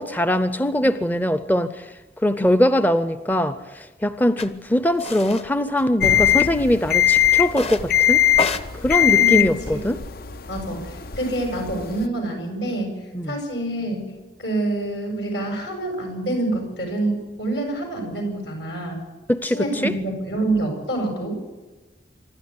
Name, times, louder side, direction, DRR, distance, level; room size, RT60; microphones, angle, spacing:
voice 1, 0.0-1.9 2.2-8.2 8.8-9.6 9.8-10.0 13.1-13.4 19.3-19.9, left 1 dB, 10° left, 12 dB, 0.6 m, -21 dB
sound 1, 4.4-4.5 5.0-5.5 5.8-6.5 7.5-7.9 8.3-10.1, left 3 dB, 35° left, 1.1 m, -30 dB
sound 2, 6.0-12.1, left 11 dB, 55° left, 0.7 m, -21 dB
voice 2, 8.9-9.9 10.5-14.1 14.4-19.0 19.4-21.4, right 2 dB, 75° left, 3 dB, 7.9 m, -27 dB
26.0 x 12.0 x 9.9 m, 1.2 s
head